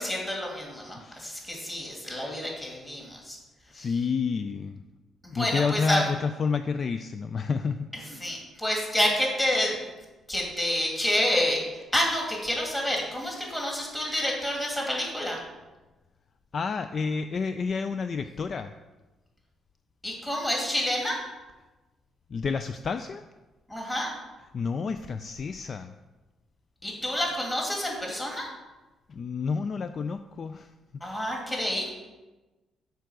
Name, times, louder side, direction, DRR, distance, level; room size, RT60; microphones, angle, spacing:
voice 1, 0.0-3.4 3.7-3.9 5.2-6.0 8.1-9.8 10.3-15.4 20.0-21.2 23.7-24.1 26.8-28.5 31.0-31.9, left 1 dB, 15° left, -1 dB, 2.4 m, -28 dB
voice 2, 0.9-1.5 3.7-4.8 5.3-7.9 16.5-18.7 22.3-23.2 24.5-25.9 29.1-30.7, left 5 dB, 45° left, 9 dB, 0.3 m, -29 dB
6.8 x 4.6 x 6.2 m, 1.2 s
cardioid pair, 90°, 0 cm